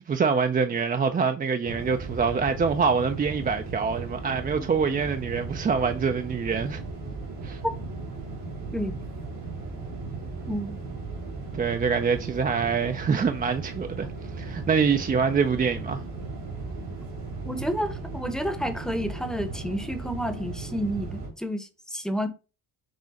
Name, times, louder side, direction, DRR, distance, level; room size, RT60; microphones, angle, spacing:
voice 1, 0.1-6.8 7.4-7.6 11.5-14.1 14.3-16.0, right 5 dB, 25° right, 0.4 m, -25 dB
sound 1, 1.6-21.3, right 3 dB, 85° right, 2.5 m, -36 dB
voice 2, 10.5-10.8 17.4-22.3, equal, ahead, 0.7 m, -30 dB
6.2 x 2.1 x 4.1 m
cardioid pair, 75°, 38 cm